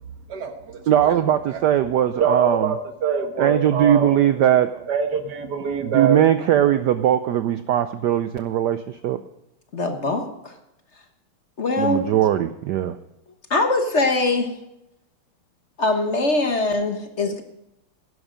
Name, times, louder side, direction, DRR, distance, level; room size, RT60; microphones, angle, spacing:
voice 1, 0.3-1.2 1.5-1.7 2.1-4.2 4.9-6.3, right 6 dB, 50° right, 6 dB, 1.7 m, -25 dB
voice 2, 0.9-2.6 3.4-4.9 5.8-9.2 11.8-13.0, right 10 dB, 90° right, 11 dB, 0.9 m, -20 dB
voice 3, 9.7-10.5 11.6-12.1 13.5-14.5 15.8-17.4, left 2 dB, 40° left, 5 dB, 1.1 m, -22 dB
11.5 x 11.0 x 5.1 m, 0.85 s
omnidirectional pair, 2.4 m